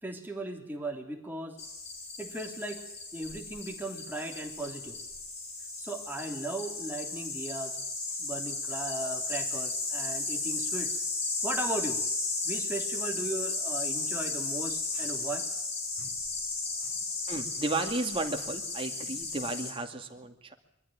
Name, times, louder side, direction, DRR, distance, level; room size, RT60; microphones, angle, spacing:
voice 1, 0.0-1.6 2.2-2.8 3.1-5.0 5.8-7.8 8.2-11.0 11.4-12.0 12.4-15.4 16.0-16.1 16.8-16.9, right 2 dB, 10° right, 1 dB, 3.2 m, -37 dB
sound 1, 1.6-19.7, left 3 dB, 35° left, 7.8 m, -34 dB
voice 2, 17.3-20.5, right 2 dB, 25° right, 4 dB, 2.4 m, -33 dB
23.0 x 14.0 x 8.7 m, 0.84 s
head